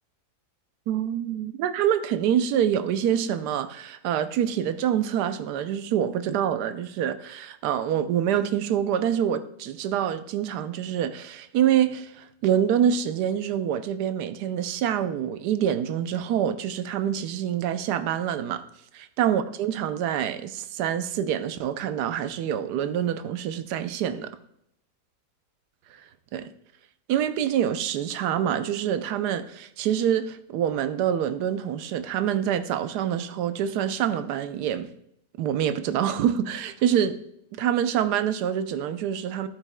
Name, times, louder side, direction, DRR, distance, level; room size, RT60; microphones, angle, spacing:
voice 1, 0.9-18.6 18.9-24.4 25.9-26.0 26.3-26.5 27.1-34.9 35.4-37.2 37.5-39.5, right 9 dB, 80° right, 1.2 m, -26 dB
13.0 x 8.3 x 2.2 m
omnidirectional pair, 1.8 m